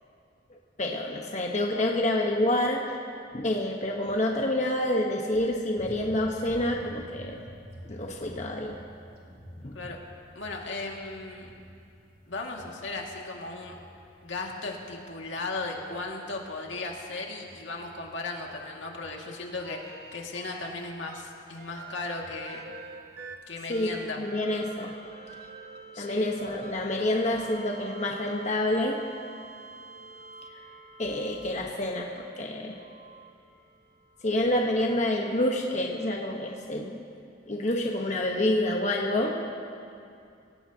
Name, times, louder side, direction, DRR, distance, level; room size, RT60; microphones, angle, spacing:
voice 1, 0.8-2.8 3.3-7.4 7.9-8.8 9.6-9.8 23.7-24.9 26.0-29.0 31.0-32.1 32.4-32.8 34.2-37.0 37.5-39.4, left 1 dB, 40° left, 0 dB, 1.1 m, -28 dB
sound 1, 5.8-24.0, equal, 30° right, 2.2 m, -50 dB
voice 2, 10.3-11.5 12.3-13.8 14.2-22.6 23.5-24.2 25.9-26.3, left 3 dB, 85° left, 0 dB, 2.0 m, -36 dB
sound 2, 19.6-20.7 21.0-31.8 32.7-34.2 36.0-36.1, right 4 dB, 55° right, 1.0 m, -47 dB
25.5 x 17.0 x 2.8 m, 2.5 s
head